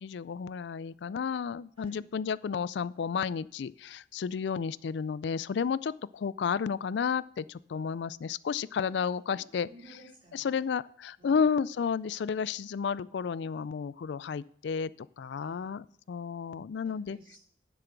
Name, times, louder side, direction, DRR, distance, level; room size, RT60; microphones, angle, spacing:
voice 1, 0.0-9.7 10.3-14.9 15.2-17.2, left 6 dB, 60° left, 20 dB, 0.3 m, -32 dB
voice 2, 8.9-10.7 11.2-11.4 15.4-15.7 16.8-17.4, right 1 dB, 25° right, -2 dB, 3.6 m, -56 dB
10.0 x 7.6 x 5.9 m, 0.65 s
head